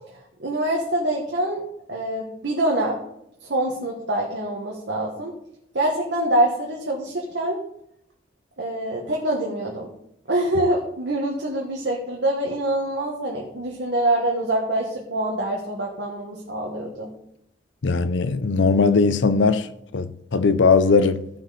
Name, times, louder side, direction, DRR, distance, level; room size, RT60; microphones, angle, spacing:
voice 1, 0.4-1.6 1.9-3.0 3.5-5.3 5.7-7.6 8.6-9.9 10.3-17.1, right 1 dB, 70° right, 1.5 m, -25 dB
voice 2, 17.8-19.7 19.9-21.3, left 4 dB, 80° left, 0.6 m, -19 dB
14.5 x 6.0 x 4.1 m
head